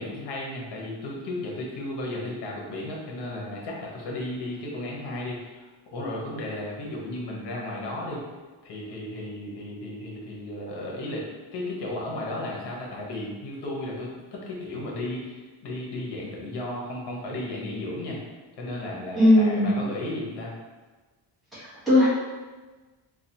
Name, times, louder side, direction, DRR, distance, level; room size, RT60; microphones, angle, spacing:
voice 1, 0.0-8.2 8.6-11.2 11.5-18.2 18.6-20.5, left 1 dB, 60° left, -3 dB, 0.9 m, -34 dB
voice 2, 19.2-19.7 21.5-22.1, left 1 dB, ahead, -12 dB, 1.1 m, -19 dB
3.2 x 2.3 x 2.7 m, 1.3 s
cardioid pair, 160°, 47 cm